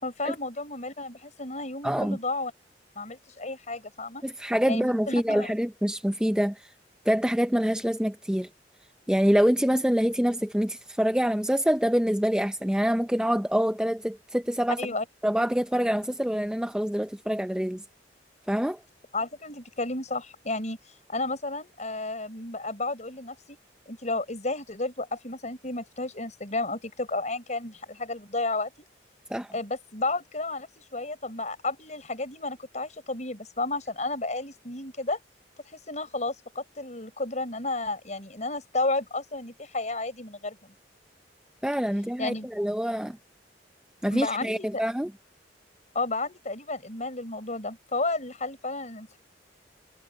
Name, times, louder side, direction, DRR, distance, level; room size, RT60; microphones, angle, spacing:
voice 1, 0.0-2.5 3.0-4.2 4.7-5.5 14.8-15.0 19.1-20.8 21.1-23.6 23.9-28.7 29.5-35.2 35.7-40.7 42.2-42.5 44.1-44.7 45.9-49.2, left 2 dB, 40° left, 5.7 m, -32 dB
voice 2, 1.8-2.2 4.2-6.7 7.1-8.5 9.1-14.8 15.2-17.8 18.5-18.8 29.3-29.5 41.6-43.2 44.0-45.1, equal, 5° right, 0.5 m, -25 dB
head